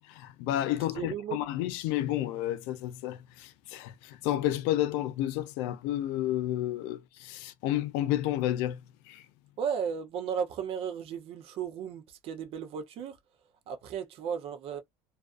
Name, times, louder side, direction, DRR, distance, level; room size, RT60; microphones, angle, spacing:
voice 1, 0.0-8.8 9.1-9.3, left 13 dB, 80° left, 0.4 m, -31 dB
voice 2, 0.9-1.4 9.6-13.2 13.7-14.8, right 7 dB, 45° right, 0.5 m, -35 dB
2.4 x 2.4 x 2.3 m
cardioid pair, 160°, 13 cm